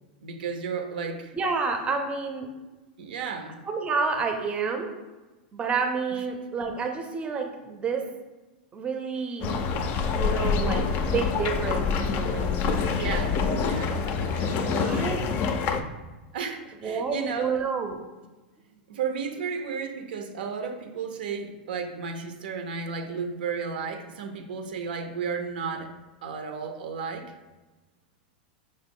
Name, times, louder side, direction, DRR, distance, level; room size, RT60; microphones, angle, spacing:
voice 1, 0.2-1.3 3.0-3.6 13.0-14.9 16.3-17.7 18.9-25.9 26.2-27.2, right 5 dB, 75° right, 5 dB, 0.5 m, -33 dB
voice 2, 1.3-2.5 3.6-4.9 5.5-8.1 8.7-9.7 10.1-13.3 13.7-13.9 14.6-15.2 16.8-18.0, right 4 dB, 20° right, 4 dB, 0.5 m, -29 dB
sound 1, 9.4-15.8, left 5 dB, 40° left, 0.4 m, -26 dB
5.1 x 2.0 x 3.6 m, 1.2 s
hypercardioid pair, 100°, 5 cm